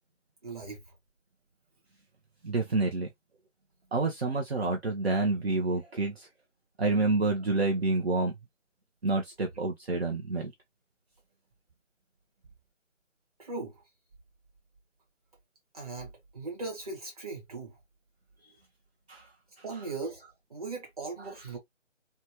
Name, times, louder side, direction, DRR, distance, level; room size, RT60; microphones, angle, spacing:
voice 1, 0.4-0.8 13.4-13.8 15.7-17.8 19.6-20.2 20.5-21.6, right 3 dB, 30° right, 1.3 m, -38 dB
voice 2, 2.4-3.1 3.9-6.3 6.8-8.3 9.0-10.5 19.1-19.2, right 3 dB, 55° right, 0.7 m, -28 dB
2.9 x 2.2 x 2.8 m
figure-of-eight pair, 170°, 37 cm